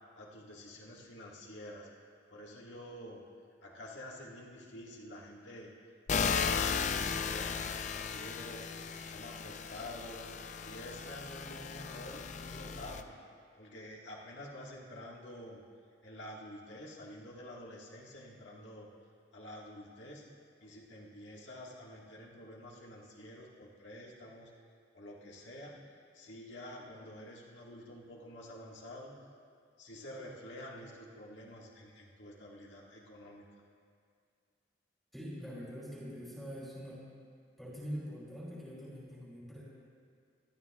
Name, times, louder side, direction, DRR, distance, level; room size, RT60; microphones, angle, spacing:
voice 1, 0.1-1.9 2.3-3.2 3.6-5.7 6.1-8.7 9.1-10.3 10.6-13.2 13.6-15.6 16.0-18.9 19.3-24.5 24.9-29.3 29.8-33.5, left 1 dB, 75° left, -3 dB, 1.6 m, -49 dB
sound 1, 6.1-13.0, left 6 dB, 40° left, 0.4 m, -36 dB
voice 2, 35.1-37.0 37.6-39.6, equal, ahead, -7 dB, 2.8 m, -44 dB
27.0 x 12.5 x 2.3 m, 2.2 s
head